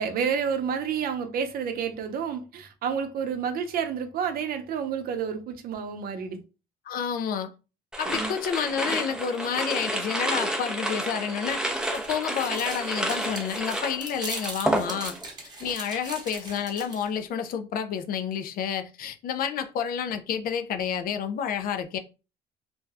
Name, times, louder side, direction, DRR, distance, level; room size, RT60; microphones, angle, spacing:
voice 1, 0.0-6.4 8.1-8.3 8.9-9.0, right 7 dB, 60° right, 0.6 m, -30 dB
voice 2, 6.9-7.5 8.0-11.6 11.9-15.2 15.6-22.0, left 8 dB, 60° left, 0.4 m, -29 dB
sound 1, 7.9-15.3 15.6-16.1, right 1 dB, 5° right, 0.5 m, -30 dB
sound 2, 11.5-17.2, right 3 dB, 25° right, 0.9 m, -40 dB
2.6 x 2.2 x 3.3 m
cardioid pair, 110°, 17 cm